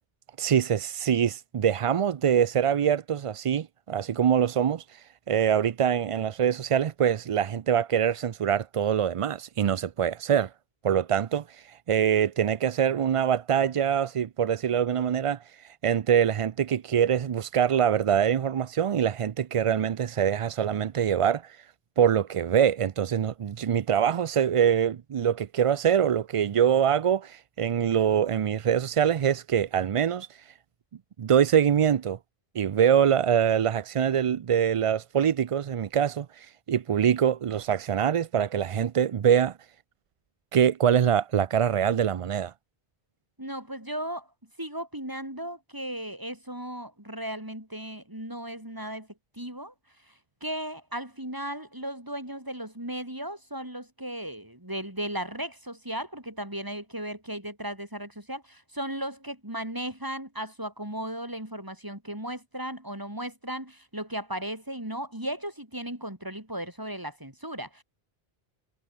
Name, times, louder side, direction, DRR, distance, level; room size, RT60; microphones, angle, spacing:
voice 1, 0.4-10.5 10.8-21.6 22.0-30.3 31.2-32.2 32.5-39.6 40.5-42.5, right 8 dB, 55° right, 0.3 m, -24 dB
voice 2, 43.4-44.3 44.6-49.1 49.4-49.7 50.4-67.8, right 1 dB, 20° right, 4.9 m, -36 dB
omnidirectional pair, 1.0 m